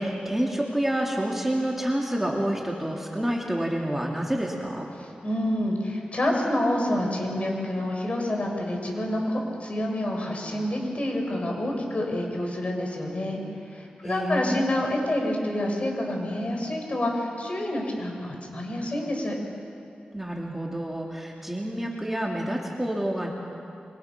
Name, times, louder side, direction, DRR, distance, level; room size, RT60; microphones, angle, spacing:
voice 1, 0.0-4.9 14.0-14.6 20.1-23.3, right 1 dB, 10° right, -1 dB, 2.8 m, -28 dB
voice 2, 5.0-13.4 13.7-19.4, left 1 dB, 45° left, 0 dB, 5.6 m, -28 dB
26.5 x 25.0 x 6.1 m, 2.5 s
wide cardioid pair, 75°, 3 cm